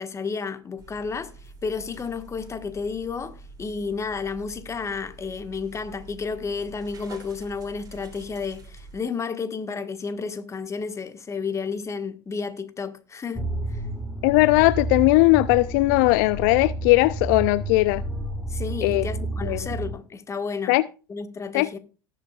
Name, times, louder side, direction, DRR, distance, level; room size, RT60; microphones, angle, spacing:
voice 1, 0.0-13.8 18.5-20.8 21.1-21.8, left 5 dB, 25° left, 1.5 m, -32 dB
sound 1, 0.8-9.0, right 3 dB, 35° right, 3.3 m, -46 dB
sound 2, 13.3-19.9, right 1 dB, ahead, 1.7 m, -31 dB
voice 2, 14.2-18.0 18.8-19.1 19.4-19.6 20.7-20.8 21.5-21.8, left 22 dB, 65° left, 0.4 m, -19 dB
18.5 x 7.7 x 2.4 m
hypercardioid pair, 75°, 12 cm